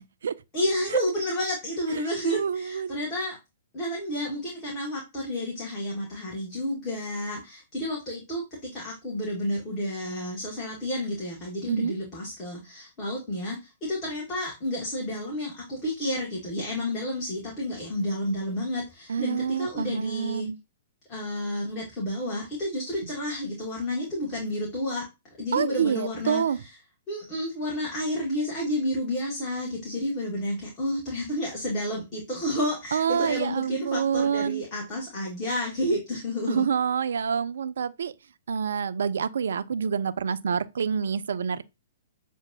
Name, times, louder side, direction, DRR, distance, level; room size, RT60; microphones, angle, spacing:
voice 1, 0.0-0.4 0.9-1.0 1.9-3.0 11.7-11.9 19.1-20.6 23.0-23.1 25.5-26.6 32.9-34.6 36.5-38.1 38.5-41.6, right 7 dB, 65° right, 0.3 m, -27 dB
voice 2, 0.5-3.4 3.7-8.4 8.7-20.5 21.1-25.0 25.4-26.4 27.1-36.6, left 1 dB, 30° left, 1.6 m, -30 dB
6.8 x 2.5 x 2.7 m
figure-of-eight pair, 115°, 0 cm